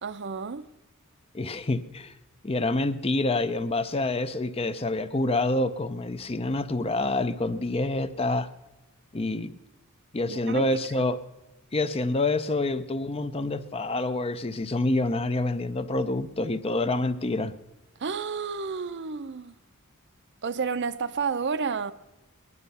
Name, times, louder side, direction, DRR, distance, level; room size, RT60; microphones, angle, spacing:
voice 1, 0.0-0.7 10.3-10.6 18.0-19.6 20.4-21.9, right 5 dB, 50° right, 0.6 m, -31 dB
voice 2, 1.3-2.1 2.4-8.5 9.1-9.6 10.1-11.2 11.7-17.5, left 2 dB, 25° left, 0.5 m, -27 dB
20.0 x 11.0 x 5.5 m
head